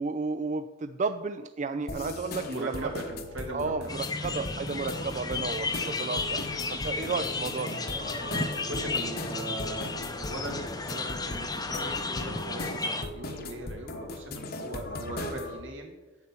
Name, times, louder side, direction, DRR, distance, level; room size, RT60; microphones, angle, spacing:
voice 1, 0.0-2.9 3.5-7.8 8.3-8.5, right 4 dB, 40° right, 9 dB, 0.4 m, -33 dB
sound 1, 1.9-15.6, left 2 dB, 50° left, 1.0 m, -39 dB
voice 2, 2.5-3.9 4.3-4.5 6.2-6.4 7.1-7.2 8.2-15.9, right 1 dB, 80° right, 1 dB, 2.6 m, -39 dB
sound 2, 3.9-13.0, left 3 dB, 20° left, 0.7 m, -33 dB
8.7 x 7.9 x 5.9 m, 1.2 s
head